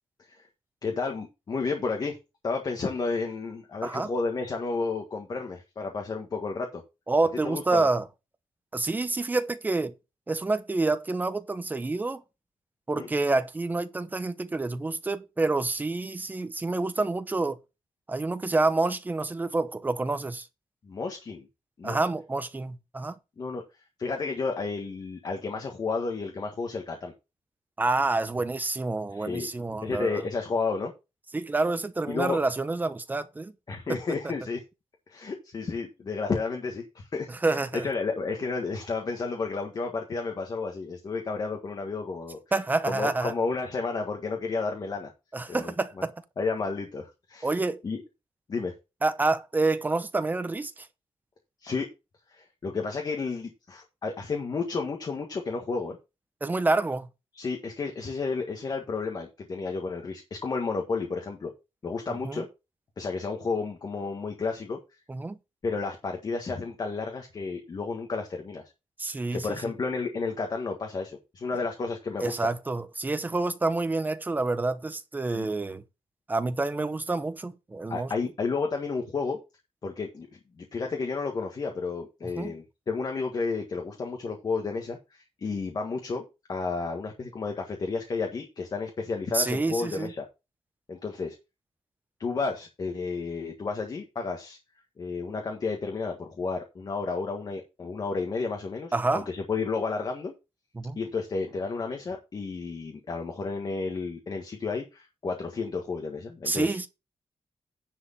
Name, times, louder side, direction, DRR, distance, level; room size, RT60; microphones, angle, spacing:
voice 1, 0.8-2.2 2.4-6.8 7.4-7.9 12.9-13.1 20.8-21.5 21.8-22.0 23.4-23.6 24.0-27.1 29.1-29.5 29.8-30.9 32.1-32.4 33.7-34.6 35.1-42.4 42.8-45.1 45.5-45.7 46.4-47.5 47.8-48.0 48.5-48.7 51.6-51.9 52.3-56.0 57.3-61.5 61.8-62.5 63.0-64.8 65.6-68.6 69.3-72.5 75.3-75.5 77.9-79.4 79.8-80.3 80.6-90.2 90.9-91.4 92.2-94.6 95.0-100.3 100.9-106.8, left 4 dB, 40° left, 1.6 m, -32 dB
voice 2, 7.1-8.1 8.7-9.9 10.3-12.2 12.9-17.6 18.1-20.5 21.8-23.1 27.8-30.2 31.3-33.5 33.9-34.2 37.3-37.9 42.5-43.3 45.3-46.1 47.4-47.8 49.0-50.9 56.4-57.1 62.1-62.4 65.1-65.4 69.0-69.5 72.2-75.8 76.3-78.1 82.4-82.5 89.3-90.1 98.9-99.3 100.7-101.0 106.4-106.9, right 3 dB, 15° right, 0.8 m, -28 dB
10.0 x 5.0 x 5.7 m
wide cardioid pair, 175°, 10 cm